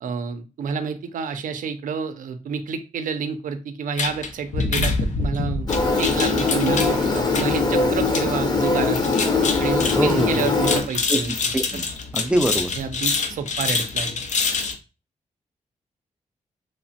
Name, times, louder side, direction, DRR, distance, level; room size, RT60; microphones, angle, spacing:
voice 1, 0.0-5.7 6.0-9.1 9.6-11.3 12.8-14.2, right 6 dB, 80° right, 9 dB, 0.4 m, -29 dB
sound 1, 4.0-14.8, left 4 dB, 65° left, 0.5 m, -27 dB
Engine, 5.7-10.8, left 3 dB, 30° left, 0.8 m, -21 dB
voice 2, 10.0-10.5 11.1-11.8 12.1-12.7, right 1 dB, 10° right, 7 dB, 0.4 m, -23 dB
3.1 x 2.0 x 2.7 m, 0.31 s
cardioid pair, 70°, 13 cm